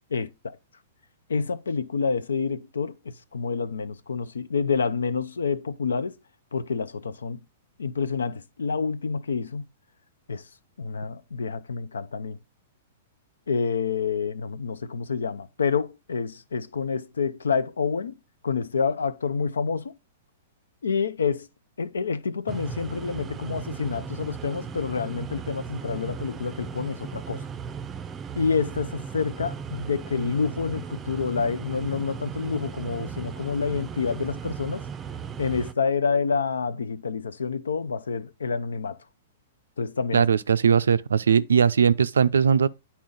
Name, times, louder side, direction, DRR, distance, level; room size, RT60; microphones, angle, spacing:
voice 1, 0.1-0.6 1.3-6.2 6.5-7.4 7.8-9.6 10.3-10.4 10.8-12.4 13.5-18.2 18.4-19.9 20.8-21.5 21.8-27.4 28.4-34.8 35.4-39.0 39.8-40.3, left 5 dB, 85° left, 0.5 m, -28 dB
sound 1, 22.5-35.7, right 6 dB, 25° right, 0.5 m, -37 dB
voice 2, 40.1-42.7, right 7 dB, 80° right, 0.4 m, -19 dB
9.4 x 4.2 x 3.8 m
hypercardioid pair, 115°, 0 cm